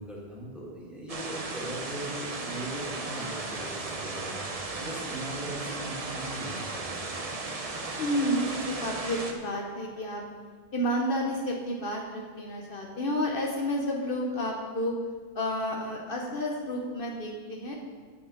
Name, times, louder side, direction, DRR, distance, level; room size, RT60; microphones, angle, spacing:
voice 1, 0.0-7.2, right 1 dB, ahead, -5 dB, 2.6 m, -40 dB
sound 1, 1.1-9.3, right 3 dB, 40° right, 1.0 m, -36 dB
voice 2, 8.0-10.2 10.7-15.0 15.3-17.7, equal, 60° left, 0 dB, 1.2 m, -30 dB
8.3 x 7.2 x 6.6 m, 1.5 s
omnidirectional pair, 1.0 m